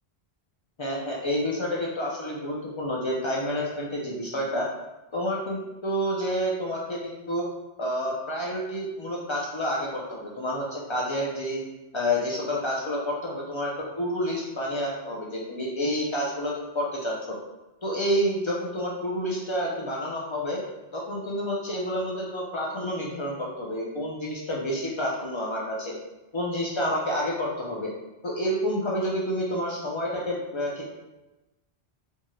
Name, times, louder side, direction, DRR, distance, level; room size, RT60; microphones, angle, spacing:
voice 1, 0.8-4.7 5.1-7.4 7.8-11.6 11.9-17.4 17.8-20.6 20.9-25.9 26.3-27.9 28.2-30.9, equal, 55° left, -3 dB, 0.3 m, -29 dB
2.6 x 2.3 x 3.0 m, 1.0 s
omnidirectional pair, 1.1 m